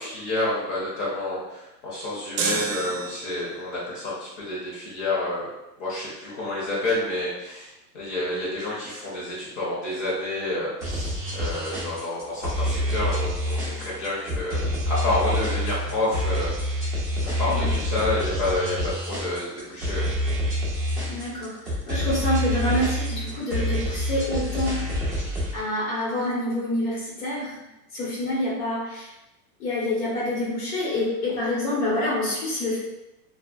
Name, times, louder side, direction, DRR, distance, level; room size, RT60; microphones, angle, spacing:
voice 1, 0.0-5.5 5.8-14.6 14.9-20.1, left 2 dB, 45° left, -6 dB, 0.9 m, -29 dB
sound 1, 2.4-3.7, right 6 dB, 70° right, 0.5 m, -30 dB
sound 2, 10.8-25.6, equal, ahead, 0.4 m, -27 dB
voice 2, 21.1-25.1 25.5-27.7 27.9-29.1 29.6-32.8, left 1 dB, 70° left, -5 dB, 1.2 m, -27 dB
2.4 x 2.2 x 2.3 m, 0.95 s
supercardioid pair, 150°, 48 cm